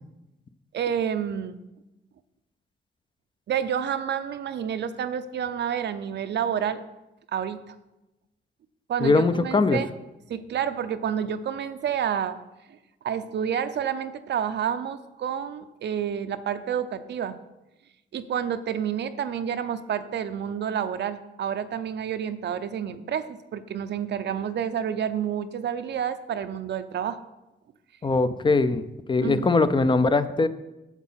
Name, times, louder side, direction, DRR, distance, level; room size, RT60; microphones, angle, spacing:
voice 1, 0.7-1.6 3.5-6.8 7.3-7.7 8.9-9.9 10.3-12.4 13.0-17.4 18.1-27.2 29.2-29.4, right 8 dB, 65° right, 10 dB, 0.6 m, -29 dB
voice 2, 9.0-9.8 28.0-30.5, left 3 dB, 25° left, 12 dB, 0.5 m, -21 dB
8.1 x 7.4 x 5.7 m, 0.99 s
cardioid pair, 105°, 20 cm